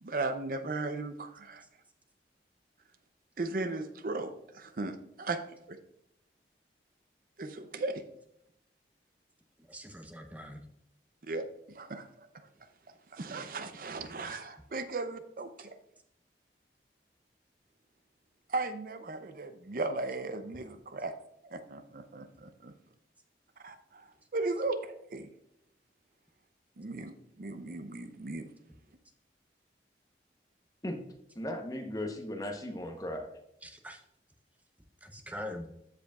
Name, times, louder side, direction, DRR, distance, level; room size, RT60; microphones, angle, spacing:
voice 1, 0.0-1.6 3.4-5.4 5.7-5.8 7.4-8.0 11.3-11.4 11.7-12.3 13.1-15.7 18.5-21.1 21.5-22.7 23.6-24.1 24.3-25.3 26.8-28.4, right 3 dB, 50° right, 9 dB, 0.5 m, -36 dB
voice 2, 9.6-10.7 33.6-34.0 35.0-35.7, left 1 dB, 10° right, 4 dB, 0.7 m, -43 dB
voice 3, 31.4-33.3, left 1 dB, 20° left, 3 dB, 0.8 m, -37 dB
14.0 x 5.0 x 2.3 m, 0.77 s
head